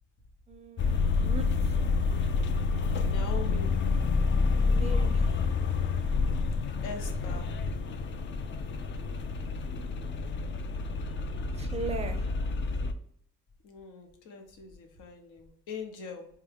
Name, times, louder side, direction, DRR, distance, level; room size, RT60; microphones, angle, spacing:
voice 1, 0.5-1.8 4.6-5.4 11.5-12.3, right 3 dB, 20° right, 7 dB, 0.5 m, -39 dB
sound 1, 0.8-12.9, left 4 dB, 40° left, 0.4 m, -28 dB
voice 2, 3.0-3.7 6.8-7.5 13.6-16.3, left 5 dB, 80° left, 4 dB, 1.0 m, -42 dB
4.8 x 2.3 x 3.3 m, 0.64 s
cardioid pair, 135°, 31 cm